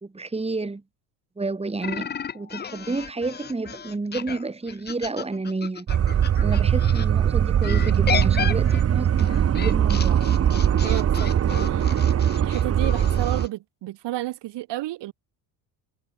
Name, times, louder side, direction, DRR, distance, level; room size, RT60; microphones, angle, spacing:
voice 1, 0.0-0.8 1.4-10.3, right 3 dB, 10° right, 2.6 m, -31 dB
sound 1, 1.8-7.1 7.6-13.5, left 7 dB, 20° left, 0.7 m, -33 dB
sound 2, 5.9-13.5, right 9 dB, 30° right, 1.0 m, -21 dB
voice 2, 10.8-11.9 12.3-15.1, right 16 dB, 55° right, 2.9 m, -31 dB
hypercardioid pair, 70°, 48 cm